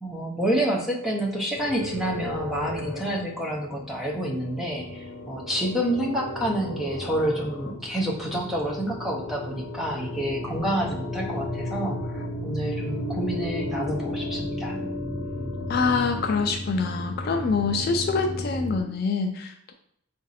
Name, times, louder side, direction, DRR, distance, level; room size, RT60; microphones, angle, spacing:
voice 1, 0.0-14.8, right 1 dB, ahead, -3 dB, 0.6 m, -28 dB
sound 1, 1.5-18.8, left 1 dB, 80° left, 0.8 m, -34 dB
voice 2, 15.7-19.7, left 4 dB, 45° left, 5 dB, 0.3 m, -25 dB
4.0 x 2.5 x 4.1 m, 0.72 s
head